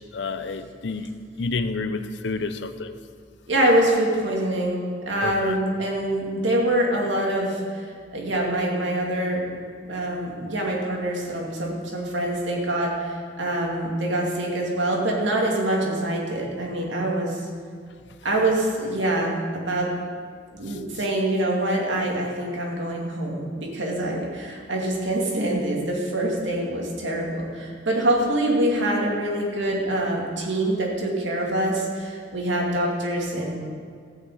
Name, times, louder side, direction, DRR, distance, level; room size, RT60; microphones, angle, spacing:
voice 1, 0.1-1.1 1.4-2.9 5.2-5.6, left 3 dB, 70° left, 10 dB, 0.6 m, -29 dB
voice 2, 3.5-4.8 5.1-9.5 9.8-17.4 18.2-19.9 20.5-33.6, right 1 dB, 75° right, -1 dB, 2.5 m, -25 dB
14.0 x 5.9 x 8.4 m, 2.1 s
head